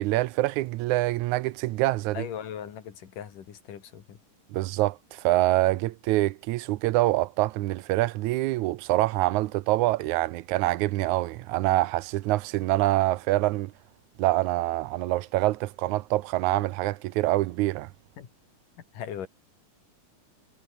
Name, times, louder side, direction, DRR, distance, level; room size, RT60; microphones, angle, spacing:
voice 1, 0.0-2.3 4.5-13.7 14.2-17.9, right 17 dB, 80° right, 1.9 m, -25 dB
voice 2, 2.1-4.2 18.2-18.3 18.9-19.3, left 9 dB, 80° left, 4.0 m, -38 dB
omnidirectional pair, 3.7 m